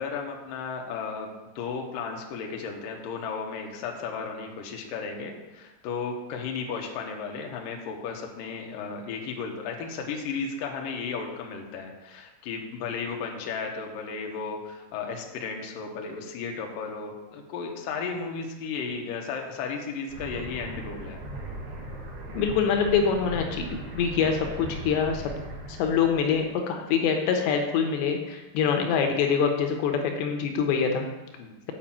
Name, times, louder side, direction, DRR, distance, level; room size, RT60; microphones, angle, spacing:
voice 1, 0.0-21.2 23.5-23.7 31.4-31.5, left 5 dB, 65° left, 1 dB, 2.4 m, -34 dB
sound 1, 20.1-26.5, right 1 dB, 55° right, 2.9 m, -38 dB
voice 2, 22.3-25.2 25.7-31.1, left 6 dB, 85° left, 3 dB, 3.1 m, -25 dB
8.8 x 5.2 x 7.5 m, 1.1 s
omnidirectional pair, 5.0 m